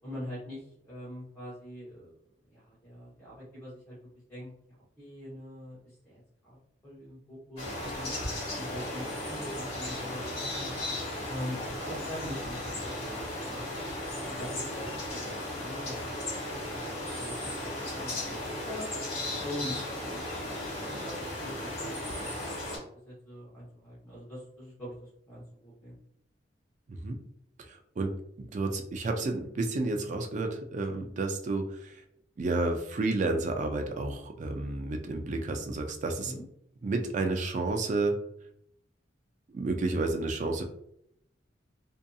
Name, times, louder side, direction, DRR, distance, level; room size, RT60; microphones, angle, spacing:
voice 1, 0.0-2.1 2.5-4.0 4.3-4.5 5.0-6.6 6.8-8.1 8.5-10.7 11.3-13.7 14.2-15.3 15.6-16.8 17.1-18.4 18.6-18.9 19.4-20.2 20.6-22.3 22.7-26.0 36.2-36.4, equal, 10° left, -9 dB, 0.8 m, -43 dB
sound 1, 7.6-22.8, left 1 dB, 35° left, 1.0 m, -36 dB
voice 2, 27.7-28.1 28.5-32.0 32.4-36.3 36.8-38.2 39.5-40.6, right 2 dB, 40° right, 4 dB, 0.3 m, -31 dB
2.6 x 2.5 x 2.2 m, 0.73 s
head